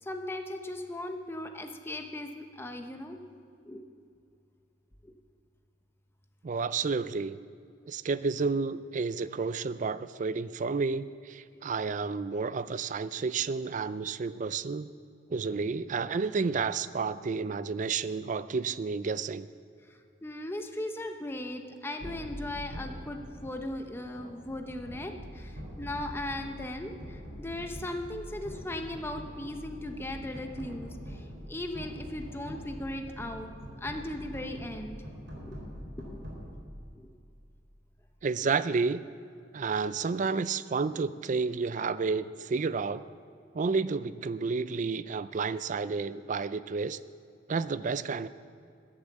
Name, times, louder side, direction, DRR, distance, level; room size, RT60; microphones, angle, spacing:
voice 1, 0.0-3.2 3.7-3.8 5.0-5.1 19.9-33.5 33.8-35.0 35.4-35.6 36.1-36.2 36.9-37.1, left 1 dB, 15° left, 5 dB, 0.7 m, -38 dB
voice 2, 6.4-7.4 7.8-14.9 15.3-19.5 38.2-39.0 39.5-43.0 43.5-47.0 47.5-48.3, right 4 dB, 45° right, 15 dB, 0.4 m, -31 dB
sound 1, 22.0-37.3, equal, 90° right, 4.1 m, -44 dB
14.5 x 8.7 x 7.4 m, 2.4 s
head